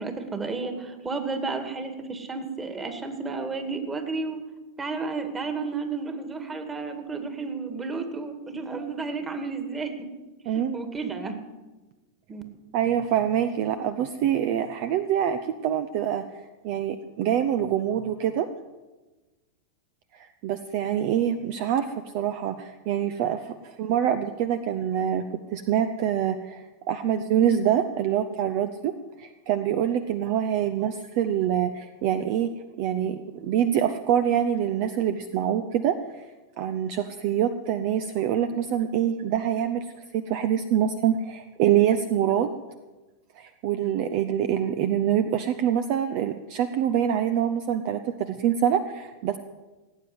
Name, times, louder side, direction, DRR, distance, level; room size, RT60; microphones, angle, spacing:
voice 1, 0.0-4.4 4.8-10.1 10.5-11.4 12.3-12.4, right 4 dB, 15° right, 7 dB, 2.1 m, -32 dB
voice 2, 10.5-10.8 12.7-16.2 16.6-18.5 20.1-25.3 25.5-28.9 29.2-32.5 32.8-36.3 36.6-42.5 43.4-49.4, right 9 dB, 45° right, 10 dB, 0.7 m, -25 dB
17.5 x 9.3 x 8.0 m, 1.2 s
figure-of-eight pair, 90°, 0 cm